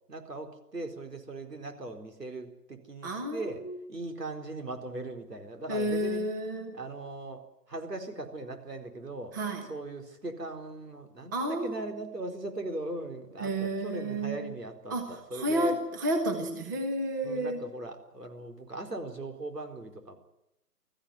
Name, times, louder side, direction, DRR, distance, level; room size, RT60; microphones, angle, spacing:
voice 1, 0.1-3.6 3.9-6.3 6.7-9.4 9.7-15.7 17.2-20.2, right 2 dB, 80° right, 4 dB, 4.4 m, -39 dB
voice 2, 3.0-3.8 5.7-6.7 9.3-9.7 11.3-11.8 13.4-14.5 14.9-17.6, right 1 dB, 10° right, 5 dB, 1.0 m, -31 dB
20.5 x 14.5 x 9.7 m, 0.86 s
figure-of-eight pair, 150°, 47 cm